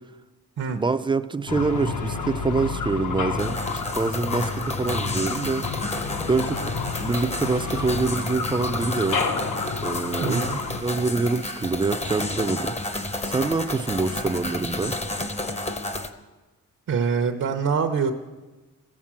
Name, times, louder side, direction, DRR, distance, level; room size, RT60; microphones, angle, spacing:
voice 1, 0.7-5.6 6.3-6.7 7.0-9.2 9.8-12.7 13.3-14.9, right 3 dB, 15° right, 11 dB, 0.4 m, -26 dB
sound 1, 1.5-10.8, left 4 dB, 70° left, 1.2 m, -30 dB
sound 2, 3.4-16.1, left 2 dB, 20° left, 0.8 m, -31 dB
voice 2, 10.2-10.6 16.9-18.1, right 6 dB, 60° right, 4 dB, 0.8 m, -24 dB
15.0 x 7.4 x 7.4 m, 1.2 s
wide cardioid pair, 130°, 32 cm